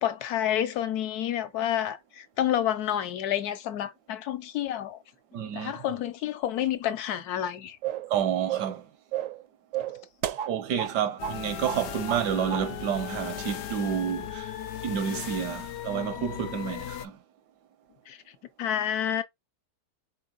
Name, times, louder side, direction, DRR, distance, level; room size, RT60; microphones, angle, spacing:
voice 1, 0.0-5.0 5.5-7.8 18.1-18.2 18.6-19.2, left 10 dB, 70° left, 1.2 m, -29 dB
voice 2, 5.3-5.7 8.1-8.8 10.5-14.5 14.8-17.2, right 8 dB, 85° right, 1.5 m, -29 dB
sound 1, 7.8-8.1 8.5-8.8 9.1-9.4 9.7-11.0 11.2-11.4 11.7-12.3 12.5-12.7, right 11 dB, 65° right, 0.8 m, -32 dB
sound 2, 11.2-17.1, left 11 dB, 85° left, 0.6 m, -37 dB
5.1 x 3.9 x 2.5 m
omnidirectional pair, 1.8 m